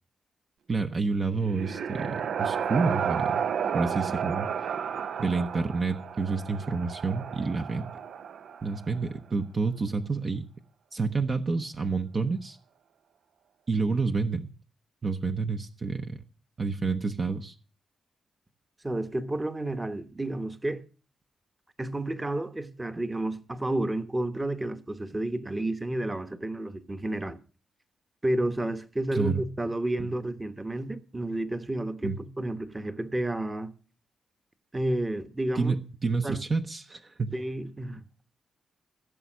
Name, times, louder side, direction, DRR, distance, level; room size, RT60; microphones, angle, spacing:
voice 1, 0.7-3.5 3.7-4.5 5.2-7.9 8.6-10.5 10.9-12.6 13.7-14.5 15.0-16.2 16.6-17.6 29.1-29.4 30.0-30.1 32.0-32.2 35.5-37.3, right 4 dB, 40° right, 0.9 m, -29 dB
sound 1, 1.1-9.0, right 7 dB, 75° right, 0.6 m, -32 dB
voice 2, 18.8-20.8 21.8-27.4 28.2-33.7 34.7-35.7 36.2-36.4 37.3-38.0, right 1 dB, 20° right, 1.1 m, -31 dB
16.0 x 7.0 x 6.2 m
cardioid pair, 95°, 0 cm